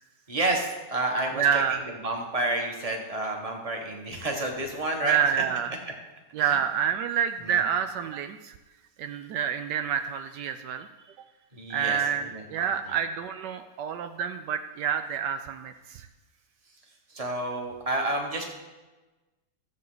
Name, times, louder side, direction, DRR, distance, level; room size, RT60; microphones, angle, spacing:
voice 1, 0.3-1.6 2.0-5.2 6.4-6.6 7.5-7.6 11.5-12.7 17.1-18.5, right 2 dB, 20° right, 1 dB, 1.5 m, -30 dB
voice 2, 1.3-1.8 5.0-5.7 6.3-8.5 9.0-10.9 11.7-16.1, right 8 dB, 80° right, 8 dB, 1.2 m, -28 dB
15.0 x 7.4 x 3.9 m, 1.2 s
omnidirectional pair, 1.9 m